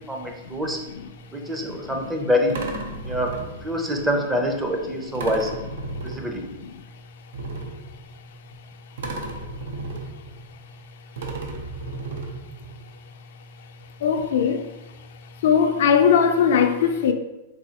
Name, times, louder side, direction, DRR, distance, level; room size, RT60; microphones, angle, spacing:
voice 1, 0.1-0.8 1.3-2.6 3.0-5.5 6.0-6.4, equal, 10° right, 0.5 m, -25 dB
sound 1, 1.2-1.3 2.5-3.9 5.1-6.7 7.3-8.6 9.0-10.8 11.2-12.9 13.8-13.9 14.2-14.3, right 2 dB, 80° right, 0.5 m, -34 dB
voice 2, 14.0-14.6 15.4-17.1, left 7 dB, 70° left, 0.3 m, -19 dB
4.0 x 2.6 x 2.8 m
hypercardioid pair, 140°, 0 cm